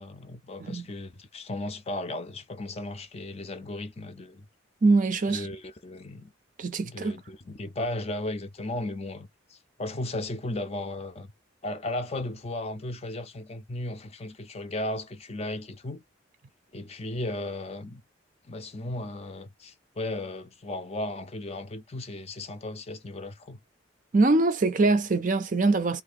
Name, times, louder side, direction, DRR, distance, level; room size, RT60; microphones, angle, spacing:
voice 1, 0.0-4.4 5.3-6.3 6.8-11.3 11.6-16.0 16.7-18.0 18.4-23.6, left 2 dB, 30° left, 0.5 m, -35 dB
voice 2, 4.8-5.5 6.6-7.2 24.1-26.0, right 3 dB, 40° right, 0.4 m, -23 dB
2.7 x 2.5 x 4.0 m
head